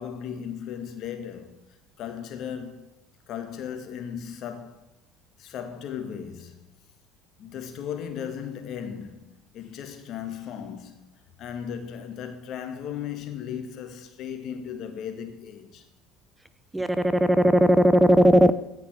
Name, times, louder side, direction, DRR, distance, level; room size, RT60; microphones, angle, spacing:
voice 1, 0.0-1.6 2.0-2.9 3.3-4.8 5.4-6.6 7.4-11.0 11.4-15.9, left 8 dB, 60° left, 2.0 m, -36 dB
voice 2, 16.7-18.5, equal, 10° right, 0.7 m, -18 dB
16.0 x 5.9 x 7.4 m
hypercardioid pair, 75°, 0 cm